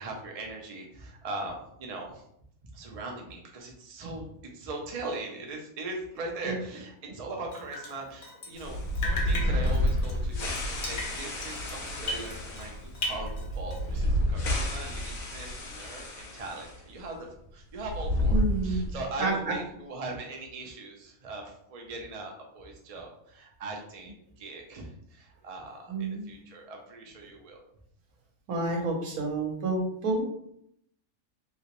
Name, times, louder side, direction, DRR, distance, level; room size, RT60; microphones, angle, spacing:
voice 1, 0.0-2.2 2.6-17.2 17.5-27.6, right 2 dB, 55° right, 1 dB, 0.4 m, -40 dB
Drip, 7.5-8.7 8.9-12.7 12.9-14.0, left 2 dB, 55° left, 0.6 m, -37 dB
sound 1, 8.6-16.8 17.0-17.1 17.8-19.1, left 1 dB, 70° left, 1.2 m, -30 dB
voice 2, 9.0-9.3 18.3-18.8 19.2-19.5 25.9-26.3 28.5-30.2, right 2 dB, 80° right, 0 dB, 1.3 m, -29 dB
3.2 x 2.9 x 2.9 m, 0.72 s
omnidirectional pair, 1.5 m